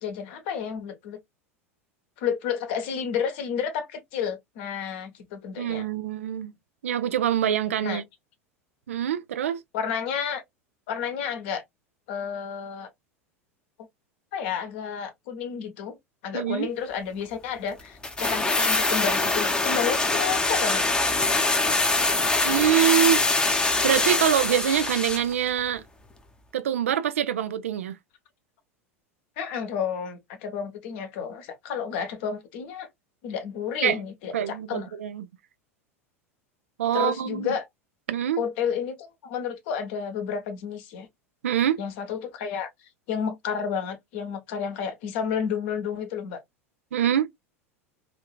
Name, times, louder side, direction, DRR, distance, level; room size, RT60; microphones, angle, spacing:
voice 1, 0.0-1.2 2.2-5.9 7.8-8.0 9.7-10.4 10.9-11.6 12.1-12.9 14.3-16.0 16.2-20.8 29.4-32.9 33.2-34.9 36.9-37.7 38.4-41.1 41.8-42.7 43.1-46.4, left 7 dB, 55° left, 0.9 m, -31 dB
voice 2, 5.6-6.5 6.8-8.0 8.9-9.6 16.3-16.7 22.4-23.2 23.8-25.8 26.5-27.9 33.8-34.0 34.3-35.3 36.8-37.5 38.1-38.4 41.4-41.8 46.9-47.3, right 10 dB, 65° right, 0.4 m, -24 dB
sound 1, 18.0-25.3 25.6-25.7, left 2 dB, 10° left, 0.7 m, -23 dB
3.2 x 2.7 x 2.2 m
figure-of-eight pair, 80°, 8 cm